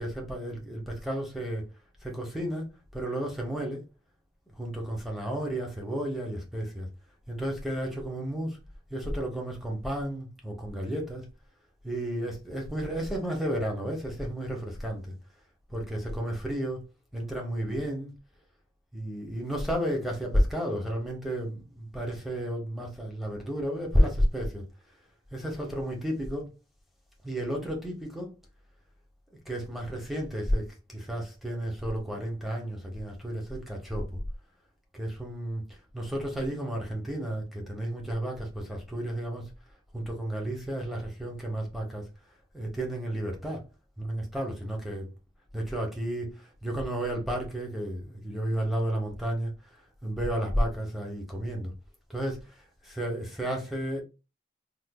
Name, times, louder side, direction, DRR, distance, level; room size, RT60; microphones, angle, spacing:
voice 1, 0.0-1.6 2.0-2.7 2.9-3.8 4.5-6.9 7.3-8.6 8.9-11.2 11.8-15.1 15.7-16.8 17.1-18.1 18.9-24.6 25.3-26.5 27.2-28.3 29.5-34.2 34.9-39.5 39.9-42.1 42.5-43.6 44.0-45.1 45.5-51.7 52.1-54.0, equal, ahead, 0.8 m, -32 dB
4.7 x 2.5 x 2.2 m
head